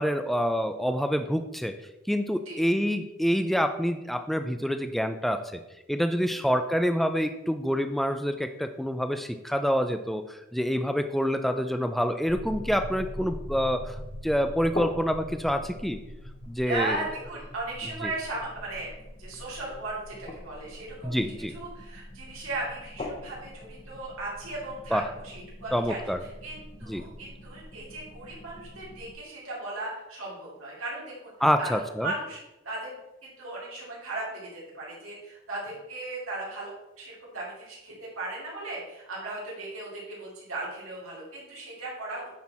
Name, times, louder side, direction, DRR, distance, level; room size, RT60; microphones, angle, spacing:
voice 1, 0.0-1.8 2.1-5.6 5.9-14.0 14.2-16.0 16.5-17.0 18.0-18.1 21.0-21.5 24.9-25.1 25.7-26.2 26.8-27.0 31.4-32.1, equal, ahead, 8 dB, 0.3 m, -27 dB
sound 1, 12.3-29.1, left 1 dB, 30° left, 0.8 m, -42 dB
voice 2, 16.6-18.9 19.2-21.1 21.5-26.0 26.4-31.3 31.6-32.4 32.6-34.5 34.7-36.7 37.0-42.2, right 2 dB, 90° right, -6 dB, 2.9 m, -36 dB
9.4 x 4.4 x 4.3 m, 0.95 s
head